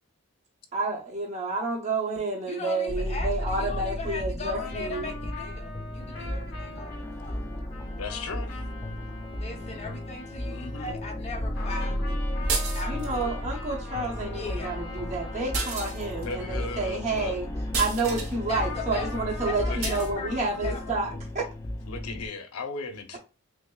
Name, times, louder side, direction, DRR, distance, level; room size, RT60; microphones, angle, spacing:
voice 1, 0.7-5.1 12.9-17.5 17.8-21.4, right 3 dB, 35° right, 0.8 m, -30 dB
voice 2, 2.5-7.5 9.4-12.0 12.7-13.3 14.3-14.8 18.5-19.1 19.4-21.0, left 3 dB, 30° left, 0.8 m, -38 dB
sound 1, 2.9-22.3, left 1 dB, 15° left, 0.4 m, -34 dB
sound 2, 4.5-11.3 11.6-17.5 18.6-21.0, left 2 dB, 50° left, 2.0 m, -44 dB
voice 3, 8.0-8.6 10.4-11.0 16.2-17.4 19.7-19.9 20.6-21.1 21.9-23.2, left 3 dB, 90° left, 0.6 m, -37 dB
sound 3, 12.5-13.2 15.5-16.3 17.7-18.3 19.8-20.1, right 4 dB, 80° right, 1.0 m, -31 dB
6.0 x 2.0 x 2.2 m
head